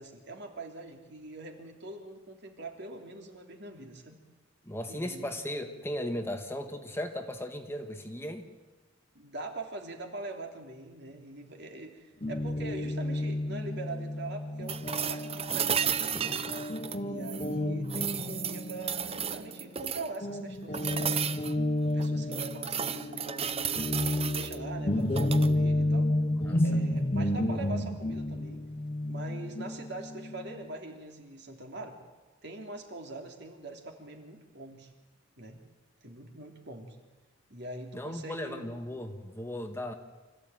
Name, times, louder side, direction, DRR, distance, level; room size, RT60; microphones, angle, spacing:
voice 1, 0.0-4.2 4.9-5.4 9.1-16.6 17.0-21.4 21.9-23.9 24.2-26.1 26.6-28.6 29.1-32.0 32.4-34.9 35.4-35.6 36.0-37.0 37.5-38.7, right 2 dB, 60° right, 3 dB, 3.1 m, -43 dB
voice 2, 4.6-8.5 26.4-26.7 37.9-39.9, left 1 dB, 15° left, 5 dB, 1.6 m, -36 dB
Guitar, 12.2-19.9 20.2-30.6, left 1 dB, 30° left, 0.9 m, -31 dB
sound 1, 14.7-17.5 17.9-20.2 20.7-21.5 22.0-24.6 25.1-25.5 27.5-27.6, right 8 dB, 30° right, 0.8 m, -33 dB
26.0 x 15.0 x 9.3 m, 1.2 s
head